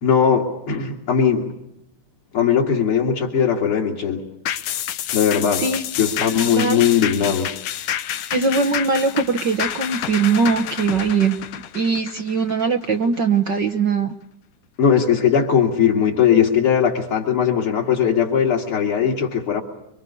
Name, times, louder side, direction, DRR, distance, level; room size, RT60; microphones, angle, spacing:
voice 1, 0.0-1.5 2.3-4.3 5.1-5.6 6.0-7.5 14.8-19.6, left 7 dB, 45° left, -3 dB, 3.3 m, -19 dB
sound 1, 4.5-13.2 13.6-13.7, left 11 dB, 85° left, 2.6 m, -29 dB
voice 2, 6.4-6.8 8.3-11.4 11.7-14.1, right 5 dB, 55° right, 7 dB, 1.2 m, -21 dB
26.0 x 25.0 x 7.0 m, 0.82 s
omnidirectional pair, 3.5 m